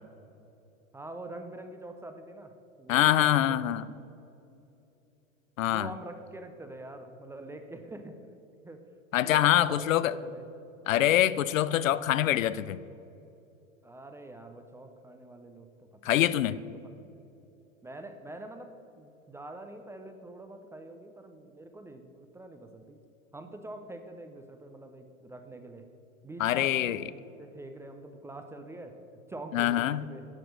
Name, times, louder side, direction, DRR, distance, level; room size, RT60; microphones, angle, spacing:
voice 1, 0.9-3.6 5.7-8.2 8.6-8.8 9.2-10.5 13.8-17.2 17.8-23.0 23.3-25.9 26.2-28.9 29.3-30.3, right 2 dB, 5° right, 6 dB, 0.4 m, -45 dB
voice 2, 2.9-3.9 5.6-5.9 9.1-10.1 10.9-12.8 16.0-16.6 26.4-27.0 29.5-30.0, left 12 dB, 75° left, 17 dB, 0.5 m, -24 dB
10.5 x 5.9 x 6.3 m, 2.8 s
hypercardioid pair, 100°, 40 cm